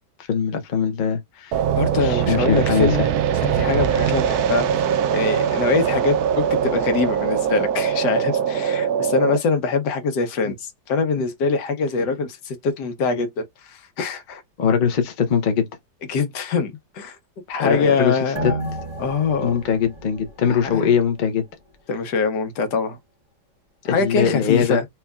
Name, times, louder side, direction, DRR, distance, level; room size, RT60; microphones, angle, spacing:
voice 1, 0.2-1.6 2.0-3.1 14.6-15.7 17.6-18.5 19.4-21.4 24.0-24.8, left 7 dB, 85° left, 0.4 m, -21 dB
sound 1, 1.5-9.4, right 8 dB, 70° right, 0.9 m, -21 dB
voice 2, 1.7-3.0 3.4-14.4 16.1-17.2 17.5-18.7 19.0-19.5 20.6-20.9 21.9-23.0 23.8-24.8, left 4 dB, 65° left, 1.4 m, -24 dB
sound 2, 18.4-21.3 21.6-21.7, right 1 dB, 40° right, 0.4 m, -32 dB
4.4 x 2.8 x 2.3 m
omnidirectional pair, 2.0 m